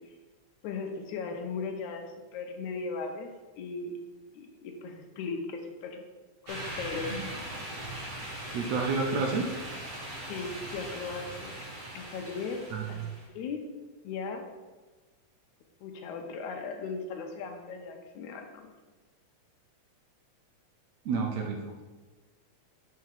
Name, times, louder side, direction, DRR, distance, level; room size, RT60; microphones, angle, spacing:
voice 1, 0.6-2.1 2.3-3.3 3.6-3.9 4.3-6.0 6.4-7.2 10.3-11.6 11.9-13.6 14.0-14.4 15.8-18.7, left 4 dB, 80° left, 4 dB, 2.1 m, -37 dB
sound 1, 6.5-13.2, right 1 dB, 50° right, 0.6 m, -40 dB
voice 2, 8.5-9.5 12.7-12.9 21.1-21.6, right 4 dB, 75° right, 2 dB, 1.7 m, -29 dB
5.7 x 4.8 x 5.7 m, 1.3 s
omnidirectional pair, 3.5 m